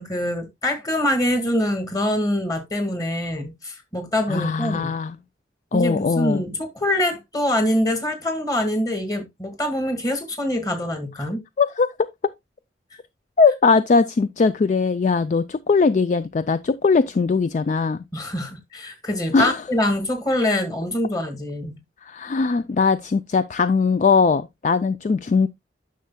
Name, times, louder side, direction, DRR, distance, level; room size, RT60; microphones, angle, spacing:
voice 1, 0.0-4.9 5.7-11.4 18.1-21.8, left 1 dB, 20° left, 1.8 m, -24 dB
voice 2, 4.3-5.2 5.7-6.4 11.6-12.1 13.4-18.0 19.3-19.6 22.0-25.5, left 4 dB, 40° left, 0.3 m, -20 dB
10.0 x 6.4 x 2.2 m
head